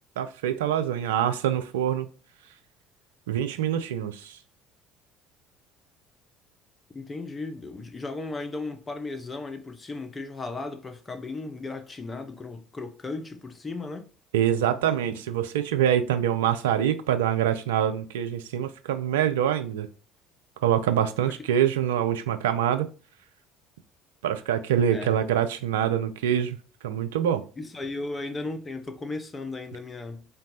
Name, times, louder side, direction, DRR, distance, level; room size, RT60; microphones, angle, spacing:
voice 1, 0.2-2.1 3.3-4.4 14.3-19.9 20.6-22.9 24.2-26.6 26.8-27.4, right 10 dB, 70° right, 0.3 m, -25 dB
voice 2, 6.9-14.1 21.2-21.3 24.9-25.2 27.6-30.2, left 3 dB, 20° left, 0.5 m, -36 dB
3.9 x 2.2 x 2.7 m
figure-of-eight pair, 60°, 0 cm